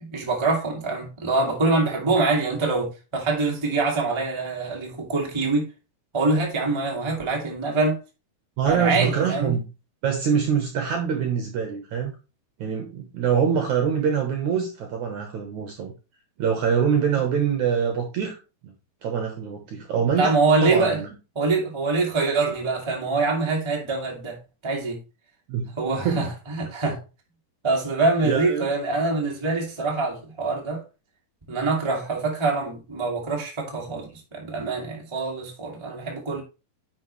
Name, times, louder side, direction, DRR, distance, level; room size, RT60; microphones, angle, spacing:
voice 1, 0.1-5.7 6.1-8.0 8.7-9.5 20.1-21.0 21.3-25.0 25.8-27.0 27.6-30.8 31.5-36.4, right 3 dB, 10° right, 1.3 m, -24 dB
voice 2, 8.6-9.7 10.0-12.1 12.6-15.9 16.4-18.4 18.6-18.7 19.0-20.4 20.6-21.1 25.5-25.7 26.0-26.3 28.2-28.7, right 7 dB, 65° right, 2.1 m, -24 dB
9.8 x 6.1 x 3.2 m
omnidirectional pair, 4.6 m